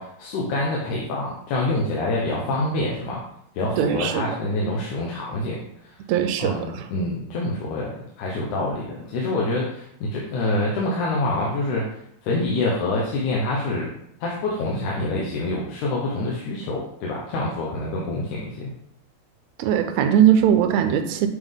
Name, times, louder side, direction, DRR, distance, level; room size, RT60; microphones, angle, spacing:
voice 1, 0.0-3.2 3.6-5.9 6.4-13.9 14.2-18.7, left 2 dB, 85° left, -3 dB, 2.4 m, -26 dB
voice 2, 3.8-4.4 6.1-6.8 19.6-21.3, right 9 dB, 80° right, 8 dB, 1.8 m, -20 dB
8.0 x 3.5 x 3.6 m, 0.74 s
omnidirectional pair, 3.4 m